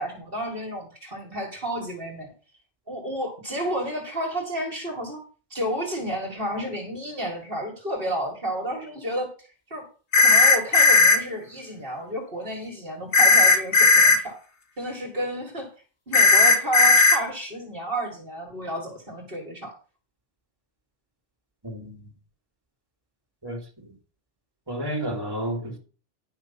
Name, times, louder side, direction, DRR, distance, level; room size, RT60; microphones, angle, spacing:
voice 1, 0.0-2.3 2.9-5.2 5.5-9.9 10.2-14.4 14.8-15.7 16.1-19.7, right 1 dB, 50° right, 2.2 m, -31 dB
sound 1, 10.1-11.2 13.1-14.2 16.1-17.2, left 3 dB, 70° left, 1.6 m, -15 dB
voice 2, 21.6-22.1 23.4-23.9 24.7-25.8, right 1 dB, 20° right, 2.5 m, -31 dB
10.5 x 5.8 x 5.7 m
omnidirectional pair, 1.2 m